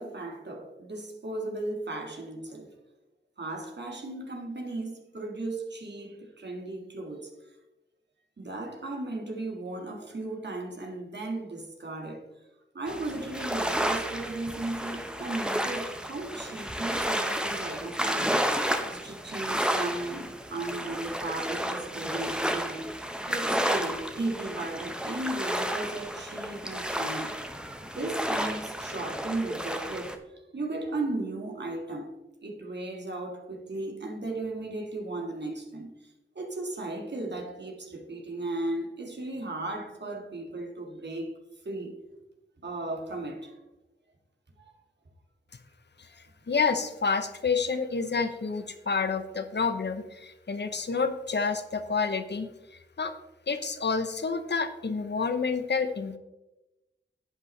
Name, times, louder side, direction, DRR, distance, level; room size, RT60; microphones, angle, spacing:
voice 1, 0.0-2.7 3.4-7.3 8.4-12.3 12.7-18.5 18.9-23.0 23.3-27.4 27.8-32.1 32.4-41.3 41.6-41.9 42.6-43.6 44.6-44.7, right 2 dB, 60° right, 1.9 m, -36 dB
sound 1, 12.9-30.2, equal, 5° right, 1.1 m, -31 dB
voice 2, 46.5-53.1 53.5-56.2, left 5 dB, 60° left, 0.9 m, -29 dB
11.0 x 8.2 x 3.3 m
cardioid pair, 45°, 20 cm